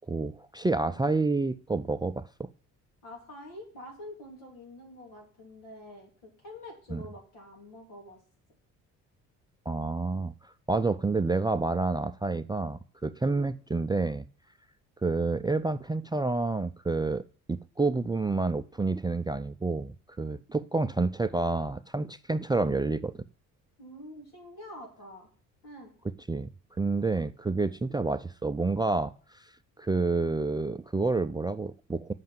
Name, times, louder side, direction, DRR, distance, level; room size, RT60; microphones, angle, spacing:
voice 1, 0.1-2.5 6.9-7.0 9.7-14.3 15.0-17.2 17.5-23.2 26.3-26.5 26.8-29.5 29.8-32.1, right 3 dB, 10° right, 14 dB, 0.4 m, -29 dB
voice 2, 0.8-1.1 3.0-8.2 13.3-13.5 23.8-25.3 25.6-25.9, left 1 dB, 80° left, 0 dB, 3.3 m, -46 dB
7.4 x 5.6 x 7.4 m, 0.43 s
hypercardioid pair, 55°, 41 cm